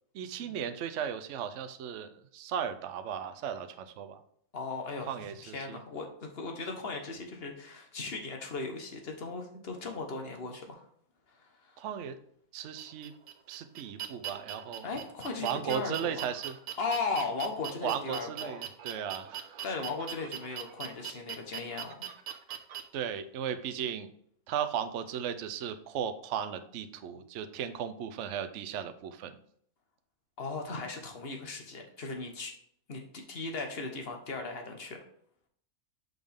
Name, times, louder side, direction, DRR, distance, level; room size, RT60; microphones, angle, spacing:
voice 1, 0.1-4.2 5.0-5.8 11.8-12.2 12.5-13.1 13.5-14.9 15.4-16.6 17.8-19.6 22.9-24.1 24.5-29.4, right 8 dB, 65° right, 9 dB, 0.9 m, -36 dB
voice 2, 4.5-5.1 5.4-10.9 11.3-11.8 14.8-16.2 16.8-18.5 19.6-22.1 30.4-32.5 32.9-35.0, left 3 dB, 45° left, 3 dB, 1.3 m, -37 dB
sound 1, 12.8-22.8, right 10 dB, 85° right, 1.3 m, -41 dB
6.5 x 5.3 x 3.5 m, 0.64 s
omnidirectional pair, 1.6 m